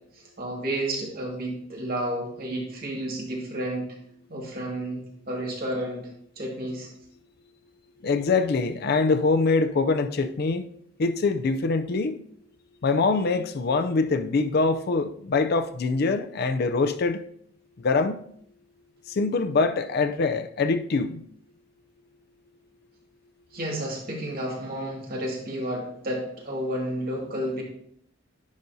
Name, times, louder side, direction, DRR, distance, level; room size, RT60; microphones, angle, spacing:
voice 1, 0.4-3.9 4.3-5.0 5.3-6.9 23.5-27.6, right 1 dB, 50° right, 2.1 m, -31 dB
voice 2, 8.0-10.6 11.0-12.2 12.8-17.2 17.8-18.2 19.1-21.2, left 4 dB, 50° left, 0.4 m, -24 dB
10.0 x 5.2 x 2.7 m
head